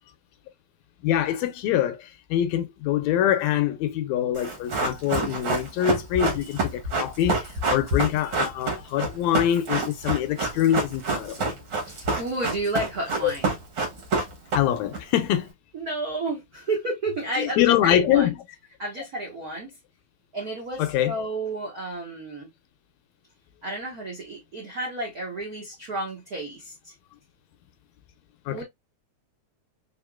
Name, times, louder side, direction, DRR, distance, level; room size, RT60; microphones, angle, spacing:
voice 1, 1.0-11.6 13.2-13.3 14.5-15.5 17.4-18.4 20.8-21.2 28.5-28.6, left 11 dB, 80° left, 1.7 m, -24 dB
Run, 4.3-15.0 15.2-15.3, right 3 dB, 50° right, 1.6 m, -27 dB
voice 2, 11.8-13.5 15.7-18.3 18.8-19.7 20.3-22.5 23.6-26.9 28.5-28.6, right 2 dB, 80° right, 0.8 m, -31 dB
4.2 x 3.5 x 2.2 m
omnidirectional pair, 3.3 m